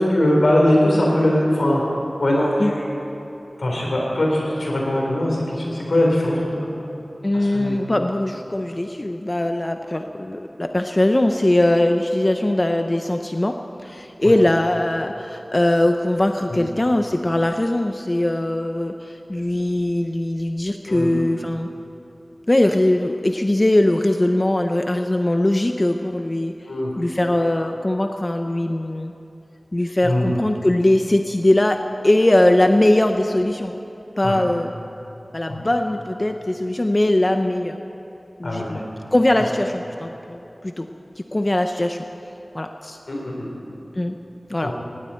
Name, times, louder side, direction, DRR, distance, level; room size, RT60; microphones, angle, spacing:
voice 1, 0.1-1.8 2.2-2.8 3.6-6.7 7.5-7.8 14.2-14.3 16.5-16.6 20.9-21.2 26.7-26.9 30.0-30.3 34.2-34.4 35.5-35.7 38.4-38.7 43.1-43.5 44.6-44.7, left 1 dB, 85° left, -2 dB, 4.1 m, -20 dB
voice 2, 7.2-21.7 22.5-26.5 27.0-29.1 29.7-33.8 34.2-34.7 35.3-37.8 38.4-40.9 41.3-42.0 42.5-43.0 44.0-44.1 44.5-44.7, left 1 dB, 35° left, 5 dB, 0.7 m, -20 dB
18.5 x 17.0 x 4.4 m, 2.9 s
wide cardioid pair, 50°, 0 cm